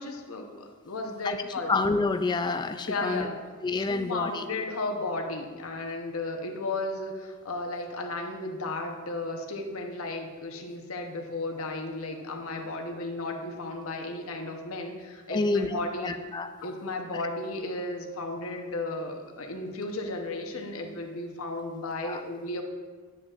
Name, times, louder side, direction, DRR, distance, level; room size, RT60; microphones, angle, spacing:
voice 1, 0.0-1.7 2.9-3.4 3.9-16.2 16.6-22.6, left 2 dB, 80° left, 3 dB, 0.9 m, -34 dB
voice 2, 1.7-3.3 3.6-4.5 15.3-16.5 17.1-17.2 22.0-22.2, left 3 dB, 20° left, 9 dB, 0.3 m, -28 dB
9.1 x 7.7 x 2.5 m, 1.5 s
head